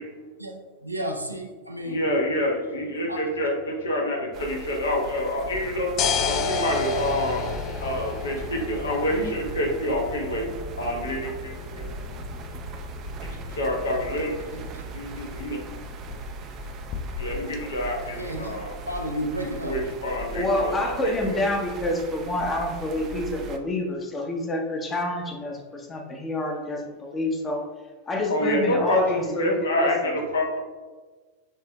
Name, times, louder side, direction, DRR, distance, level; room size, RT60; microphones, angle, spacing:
voice 1, 0.8-2.0 3.1-3.2 14.5-14.8 18.0-18.6 18.9-19.8, equal, 85° right, 2 dB, 0.5 m, -32 dB
voice 2, 1.8-6.0 6.2-10.5 10.8-11.9 13.2-14.3 14.9-15.6 17.2-18.8 19.6-20.7 21.0-21.5 28.3-30.6, left 1 dB, 65° left, 0 dB, 0.9 m, -27 dB
sound 1, 4.3-23.6, right 3 dB, 35° right, 0.4 m, -39 dB
sound 2, 5.5-17.6, left 5 dB, 35° left, 0.4 m, -33 dB
voice 3, 20.3-27.7 28.1-29.5 29.8-30.1, left 1 dB, 20° left, 2 dB, 0.7 m, -28 dB
6.4 x 2.6 x 2.2 m, 1.3 s
figure-of-eight pair, 90°, 0 cm